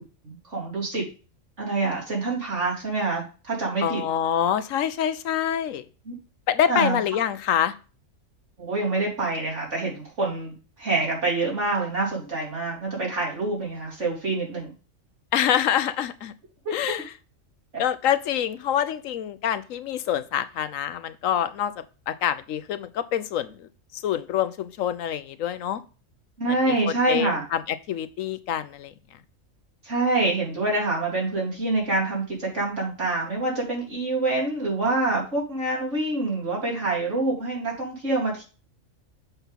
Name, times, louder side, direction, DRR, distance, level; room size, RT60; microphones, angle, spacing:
voice 1, 0.2-1.1 1.6-4.0 6.1-6.2 6.7-7.0 8.6-14.7 16.7-17.0 26.4-27.5 29.8-38.4, right 2 dB, 65° right, -3 dB, 3.7 m, -26 dB
voice 2, 3.8-5.8 6.5-7.7 15.3-16.3 16.7-17.0 17.8-25.8 26.5-28.9, left 10 dB, 80° left, 12 dB, 1.1 m, -26 dB
6.9 x 5.8 x 3.6 m, 0.34 s
omnidirectional pair, 1.4 m